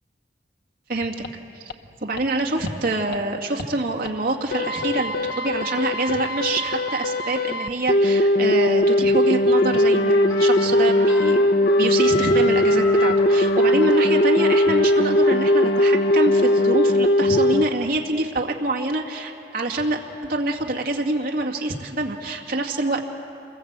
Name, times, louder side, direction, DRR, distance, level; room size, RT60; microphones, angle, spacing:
sound 1, 1.2-1.3 1.7-1.8 2.2-2.3 2.7-2.8 3.1-3.2 3.6-3.7 4.1-4.2 4.5-17.6, left 1 dB, 65° left, 0.8 m, -19 dB
voice 1, 2.0-23.0, right 2 dB, 55° right, 1 dB, 2.2 m, -26 dB
Trumpet, 9.5-17.1, left 5 dB, 90° left, 1.8 m, -33 dB
28.0 x 21.0 x 8.2 m, 2.9 s
head